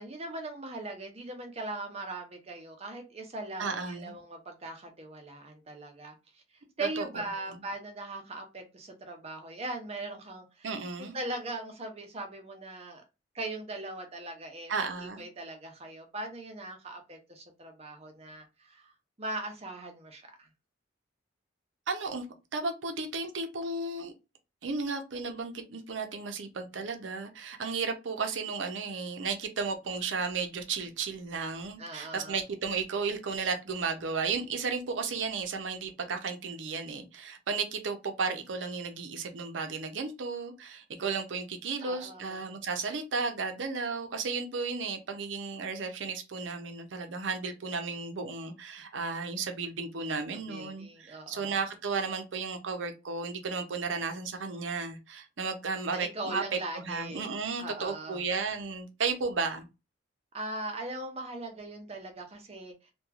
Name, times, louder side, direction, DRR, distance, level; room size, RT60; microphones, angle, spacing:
voice 1, 0.0-6.4 6.8-10.7 11.0-13.0 13.3-18.9 19.2-20.5 31.8-32.4 41.8-42.5 50.3-51.6 55.9-57.3 57.6-58.2 60.3-62.9, right 2 dB, 35° right, 0.6 m, -40 dB
voice 2, 3.6-4.2 7.0-7.1 10.6-11.2 14.7-15.2 21.9-22.2 22.5-24.1 24.6-59.7, right 4 dB, 75° right, 0.6 m, -34 dB
2.9 x 2.2 x 2.4 m
head